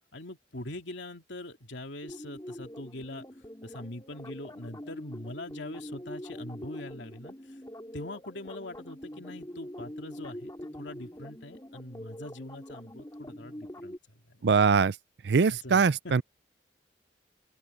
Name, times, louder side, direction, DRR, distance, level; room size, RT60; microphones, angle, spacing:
voice 1, 0.1-3.2 3.6-7.3 7.9-14.4 15.5-16.1, left 1 dB, 90° left, 2.6 m, -43 dB
sound 1, 2.0-14.0, equal, 20° left, 5.0 m, -44 dB
voice 2, 14.4-14.9 15.2-16.2, right 5 dB, 65° right, 0.5 m, -22 dB
open air
head